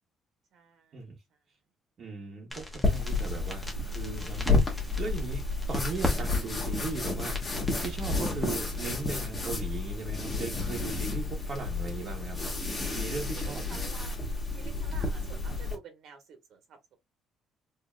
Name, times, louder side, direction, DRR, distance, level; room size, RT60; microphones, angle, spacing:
voice 1, 0.5-1.1 13.3-14.2 14.5-17.0, right 6 dB, 65° right, 1.2 m, -50 dB
voice 2, 2.0-12.4 12.9-13.8, right 4 dB, 45° right, 1.0 m, -38 dB
sound 1, 2.5-9.0, left 2 dB, ahead, 1.0 m, -37 dB
sound 2, 2.8-15.8, left 3 dB, 20° left, 1.3 m, -31 dB
4.7 x 2.7 x 2.2 m
cardioid pair, 150°, 0 cm